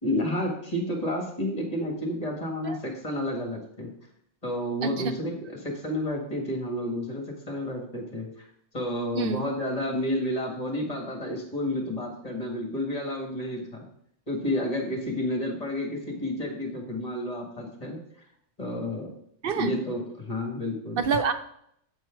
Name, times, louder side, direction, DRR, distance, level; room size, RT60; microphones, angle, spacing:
voice 1, 0.0-3.9 4.4-8.5 8.7-13.9 14.3-18.0 18.6-19.1 19.5-21.0, left 1 dB, 30° left, 1 dB, 1.7 m, -30 dB
voice 2, 4.8-5.1 9.1-9.4 19.4-19.8 20.9-21.3, right 5 dB, 60° right, 9 dB, 0.7 m, -27 dB
8.1 x 4.5 x 5.8 m, 0.70 s
omnidirectional pair, 1.3 m